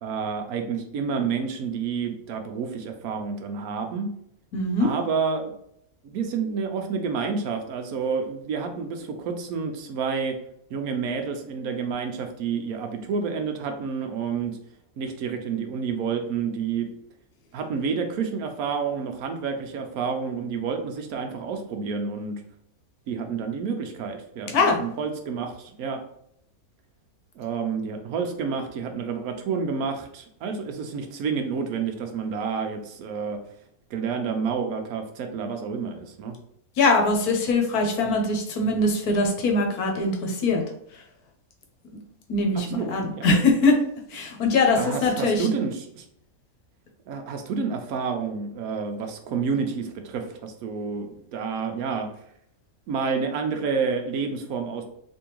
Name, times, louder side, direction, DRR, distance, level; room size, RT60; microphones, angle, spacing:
voice 1, 0.0-4.1 4.8-5.5 6.0-10.3 10.7-14.5 15.0-16.9 17.5-22.4 23.1-26.0 27.4-33.4 33.9-36.4 42.7-42.9 43.2-43.3 44.7-46.0 47.1-52.1 52.9-54.9, right 5 dB, 80° right, 5 dB, 1.1 m, -29 dB
voice 2, 4.5-4.9 24.5-24.8 36.8-40.6 40.9-41.0 42.3-43.8 44.1-45.5, left 3 dB, 85° left, 2 dB, 1.3 m, -22 dB
3.5 x 3.0 x 3.0 m, 0.70 s
omnidirectional pair, 1.6 m